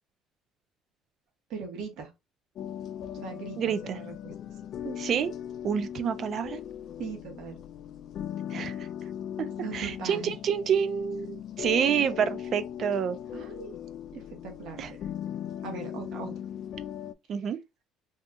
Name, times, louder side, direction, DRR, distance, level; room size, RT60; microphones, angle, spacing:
voice 1, 1.5-2.1 3.1-4.3 7.0-7.6 9.6-10.3 11.8-12.1 13.3-15.0 15.6-16.3, right 5 dB, 65° right, 1.1 m, -40 dB
sound 1, 2.6-17.1, left 10 dB, 50° left, 0.3 m, -38 dB
voice 2, 3.6-4.0 4.8-5.3 5.6-6.6 8.5-8.7 9.4-9.5 9.7-13.2 14.8-14.9 17.3-17.6, right 8 dB, 45° right, 0.3 m, -28 dB
2.7 x 2.3 x 3.5 m
cardioid pair, 145°, 0 cm